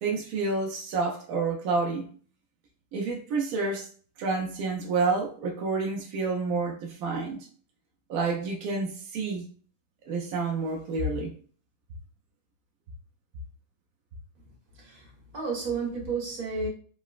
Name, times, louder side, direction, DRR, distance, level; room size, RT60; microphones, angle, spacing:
voice 1, 0.0-2.1 2.9-3.9 4.2-7.5 8.1-9.5 10.1-11.3, right 4 dB, 75° right, 0 dB, 0.8 m, -29 dB
voice 2, 15.3-16.7, right 4 dB, 50° right, -3 dB, 1.4 m, -31 dB
3.8 x 2.1 x 2.3 m, 0.43 s
omnidirectional pair, 2.2 m